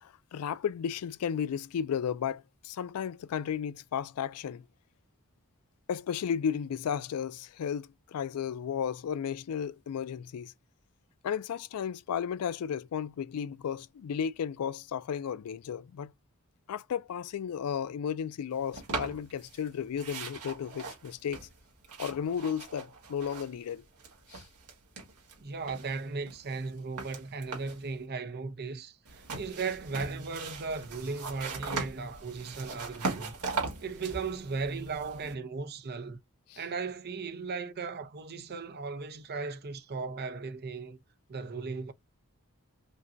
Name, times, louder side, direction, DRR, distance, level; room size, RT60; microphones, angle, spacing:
voice 1, 0.0-4.7 5.9-10.5 11.2-16.1 16.7-21.5 22.0-23.8 24.3-24.4 36.5-36.6, left 8 dB, 80° left, 0.4 m, -34 dB
sound 1, 18.7-19.7 20.0-23.7 24.0-25.4 25.7-27.9 29.0-35.3, right 4 dB, 90° right, 1.8 m, -39 dB
voice 2, 25.4-33.3 33.8-36.2 36.6-41.0 41.3-41.9, right 4 dB, 45° right, 0.6 m, -36 dB
5.2 x 2.2 x 2.6 m
head